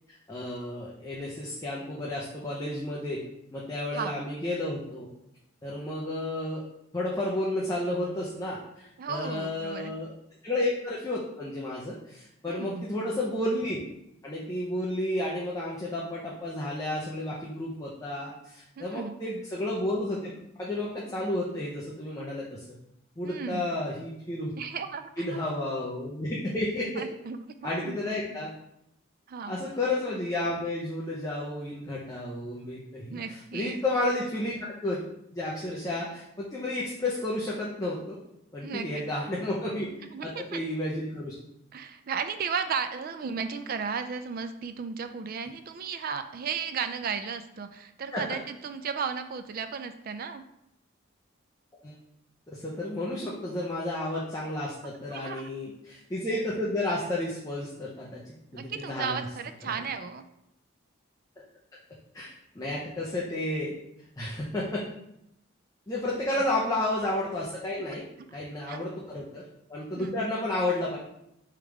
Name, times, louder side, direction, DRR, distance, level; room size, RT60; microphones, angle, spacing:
voice 1, 0.1-3.2 3.5-5.1 5.6-6.6 6.9-10.1 10.4-13.8 14.2-22.7 23.2-24.5 25.2-27.0 27.6-28.5 29.5-35.0 35.3-38.2 38.5-41.3 48.1-48.2 51.8-52.0 52.5-59.3 59.7-59.8 62.1-63.7 64.2-64.8 65.9-68.1 68.3-69.4 69.7-71.0, left 1 dB, 15° left, -5 dB, 0.6 m, -32 dB
voice 2, 9.0-9.9 12.5-12.9 18.8-19.2 23.2-23.7 24.6-25.2 27.0-28.0 29.3-29.6 33.1-33.8 38.6-39.1 40.1-40.6 41.7-50.4 55.1-55.5 58.6-60.3 68.3-68.4 68.7-68.8 69.9-70.3, right 6 dB, 45° right, 9 dB, 0.3 m, -35 dB
3.5 x 3.2 x 4.7 m, 0.80 s
head